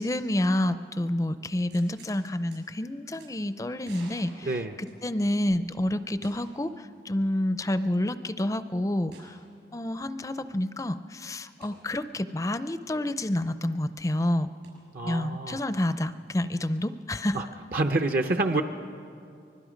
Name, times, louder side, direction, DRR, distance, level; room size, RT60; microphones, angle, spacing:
voice 1, 0.0-9.4 9.7-14.5 15.0-17.4, left 1 dB, 20° left, 12 dB, 0.5 m, -29 dB
sound 1, 1.7-2.2 2.5-2.6 3.1-3.3 3.8-5.3 6.2-6.7 7.0-7.1 9.1-9.4 11.6-11.8 14.6-14.7, right 2 dB, 80° right, 6.3 m, -51 dB
voice 2, 14.9-15.6 17.3-17.4 17.7-18.6, right 2 dB, 55° right, 6 dB, 0.7 m, -27 dB
25.0 x 21.0 x 5.2 m, 2.4 s
head